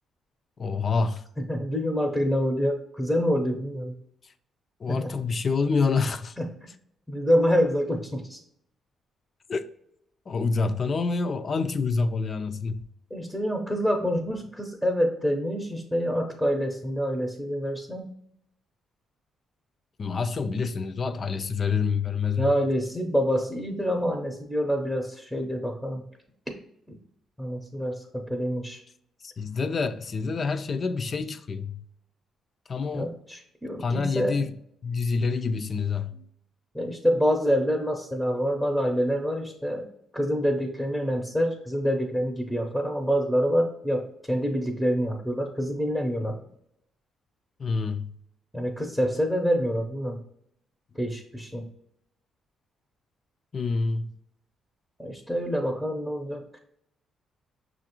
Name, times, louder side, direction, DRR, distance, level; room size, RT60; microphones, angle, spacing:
voice 1, 0.6-1.2 4.8-6.4 9.5-9.6 10.3-12.8 20.0-22.5 29.2-31.8 32.7-33.1 33.8-34.5 34.8-36.3 47.6-48.1 53.5-54.1, left 4 dB, 45° left, 0.4 m, -27 dB
voice 2, 1.5-3.9 4.9-5.1 6.4-6.5 7.1-8.4 13.1-18.1 22.4-26.0 26.5-26.6 27.4-28.8 32.9-34.4 36.7-39.9 40.1-46.4 48.5-50.2 50.9-51.7 55.0-56.6, equal, 5° right, 0.6 m, -26 dB
5.9 x 2.5 x 2.9 m
cardioid pair, 90°, 0 cm